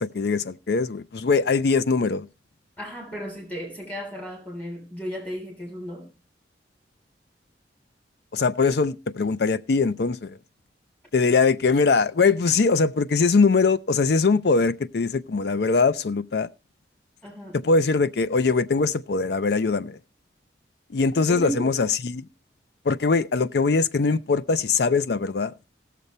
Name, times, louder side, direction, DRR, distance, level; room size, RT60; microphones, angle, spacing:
voice 1, 0.0-2.3 8.3-10.4 11.1-16.5 17.5-20.0 20.9-22.3 22.9-25.5, left 4 dB, 60° left, 0.5 m, -22 dB
voice 2, 2.8-6.1 17.2-17.6 21.3-21.7, equal, 10° left, 3.3 m, -34 dB
16.5 x 6.8 x 4.2 m
head